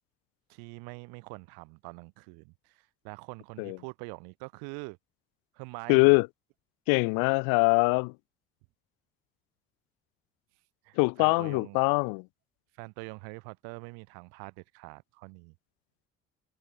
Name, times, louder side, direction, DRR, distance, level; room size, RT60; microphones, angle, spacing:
voice 1, 0.5-5.0 5.5-6.2 10.8-11.8 12.8-15.5, right 35 dB, 70° right, 7.9 m, -44 dB
voice 2, 5.9-6.3 6.9-8.1 11.0-12.2, left 34 dB, 60° left, 0.6 m, -23 dB
figure-of-eight pair, 50°, 39 cm